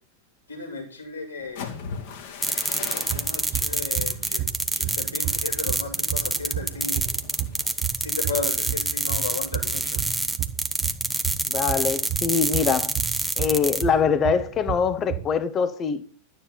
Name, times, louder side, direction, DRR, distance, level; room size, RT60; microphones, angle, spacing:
voice 1, 0.5-1.7 2.8-4.5 4.7-7.0 8.0-10.0, left 4 dB, 85° left, 6.6 m, -34 dB
sound 1, 1.4-9.2 9.6-9.9 10.3-10.7, left 6 dB, 50° left, 2.2 m, -41 dB
sound 2, 2.4-13.8, right 2 dB, 5° right, 1.1 m, -26 dB
sound 3, 3.1-15.3, right 11 dB, 35° right, 1.1 m, -33 dB
voice 2, 11.5-12.9 13.4-16.0, left 6 dB, 25° left, 1.1 m, -23 dB
11.5 x 9.5 x 6.0 m
figure-of-eight pair, 90°, 0 cm